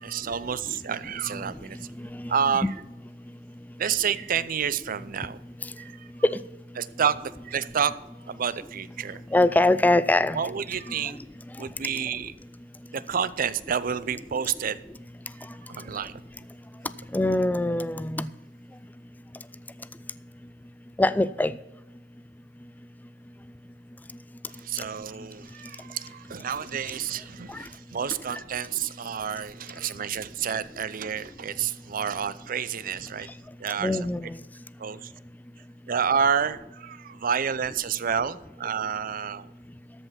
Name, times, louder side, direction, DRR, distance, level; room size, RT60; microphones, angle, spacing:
voice 1, 0.0-1.8 2.3-2.7 3.8-5.4 5.8-6.1 6.8-8.0 8.3-9.2 10.3-11.2 11.6-12.3 12.9-14.8 15.7-16.2 24.6-33.3 33.6-34.0 34.8-35.1 35.9-39.5, right 7 dB, 50° right, 16 dB, 0.5 m, -29 dB
voice 2, 9.3-10.4 17.1-18.3 21.0-21.5 33.8-34.4, left 2 dB, 10° left, 16 dB, 0.3 m, -22 dB
13.0 x 5.6 x 5.8 m, 0.98 s
head